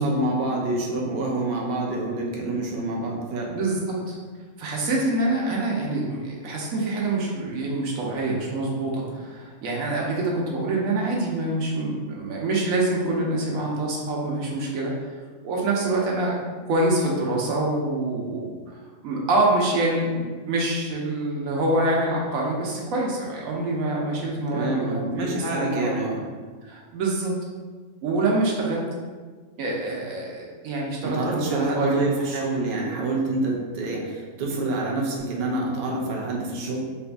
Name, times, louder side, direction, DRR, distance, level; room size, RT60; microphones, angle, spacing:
voice 1, 0.0-3.6 24.5-26.2 31.0-36.9, right 2 dB, 50° right, -2 dB, 0.7 m, -27 dB
voice 2, 3.5-4.2 4.6-14.9 15.4-16.3 16.7-26.0 26.6-27.3 28.0-28.8 29.6-32.4, right 2 dB, 90° right, -2 dB, 1.2 m, -26 dB
4.0 x 3.4 x 2.5 m, 1.5 s
omnidirectional pair, 1.4 m